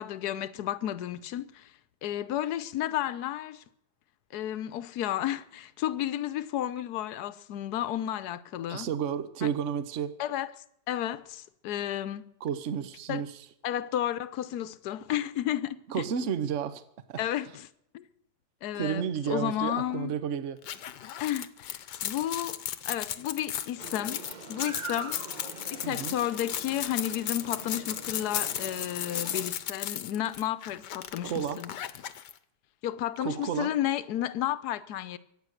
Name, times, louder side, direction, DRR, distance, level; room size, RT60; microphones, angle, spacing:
voice 1, 0.0-1.7 2.0-3.6 4.3-8.9 9.4-9.5 10.2-10.5 10.9-12.3 13.1-13.2 13.6-16.1 17.2-17.7 17.9-18.0 18.6-20.1 21.2-24.2 24.5-25.2 25.7-31.7 32.8-35.2, left 12 dB, 70° left, 1.3 m, -32 dB
voice 2, 8.7-10.2 12.4-13.3 15.9-16.8 17.1-17.2 18.7-20.6 25.8-26.2 31.2-31.6 33.2-33.7, right 8 dB, 50° right, 1.2 m, -31 dB
sound 1, 20.6-32.3, left 10 dB, 90° left, 1.5 m, -35 dB
sound 2, 23.8-29.5, right 4 dB, 30° right, 1.1 m, -44 dB
24.0 x 9.2 x 6.5 m
omnidirectional pair, 1.8 m